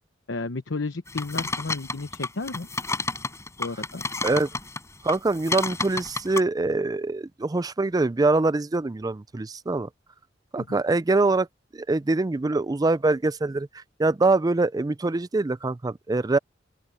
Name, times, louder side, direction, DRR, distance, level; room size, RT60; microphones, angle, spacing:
voice 1, 0.3-2.7 3.6-4.0 10.6-10.7, left 3 dB, 85° left, 1.0 m, -32 dB
sound 1, 1.1-4.8 5.1-6.4, left 3 dB, 15° left, 4.8 m, -31 dB
voice 2, 5.0-9.9 10.5-11.5 11.7-16.4, right 3 dB, 20° right, 0.4 m, -24 dB
open air
head